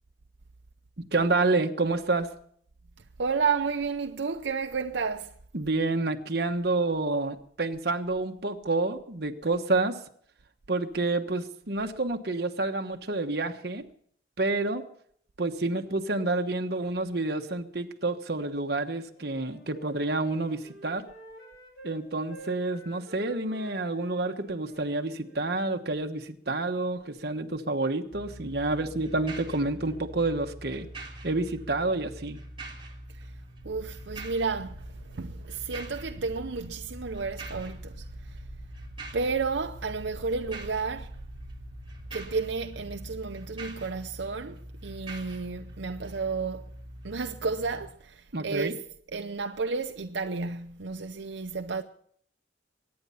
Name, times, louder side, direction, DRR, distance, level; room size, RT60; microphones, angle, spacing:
voice 1, 1.0-2.3 5.5-10.0 10.7-13.8 14.4-14.8 15.4-21.0 21.8-30.9 31.2-32.4 48.3-48.7, right 2 dB, 60° right, 1.2 m, -29 dB
voice 2, 3.2-5.3 33.1-33.3 33.6-38.4 39.1-41.1 42.1-46.7 47.0-48.8 49.1-51.8, right 4 dB, 80° right, 0.7 m, -32 dB
Wind instrument woodwind instrument, 19.1-22.0 22.3-25.6, right 2 dB, 60° left, 3.2 m, -49 dB
sound 1, 28.1-47.9, right 1 dB, 30° right, 2.9 m, -44 dB
sound 2, 33.5-43.1, right 1 dB, 75° left, 4.6 m, -50 dB
23.0 x 9.7 x 5.6 m
head